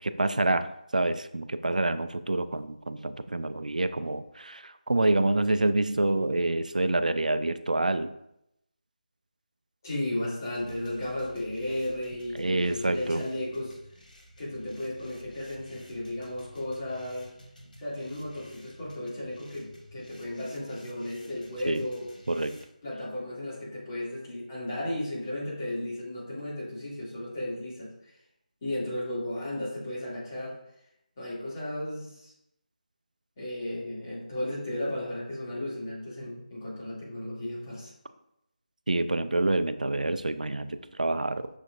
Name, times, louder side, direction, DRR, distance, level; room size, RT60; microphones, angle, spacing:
voice 1, 0.0-8.1 12.4-13.2 21.7-21.8 22.3-22.6 38.9-41.5, right 2 dB, 65° right, 11 dB, 0.4 m, -27 dB
voice 2, 9.8-13.8 14.4-17.3 17.8-22.1 22.8-28.1 28.6-30.6 31.2-32.3 33.4-37.9, left 1 dB, 25° left, -8 dB, 2.3 m, -34 dB
sound 1, 10.5-22.7, left 1 dB, 70° left, 1.4 m, -53 dB
6.3 x 6.0 x 2.5 m, 0.82 s
figure-of-eight pair, 160°, 5 cm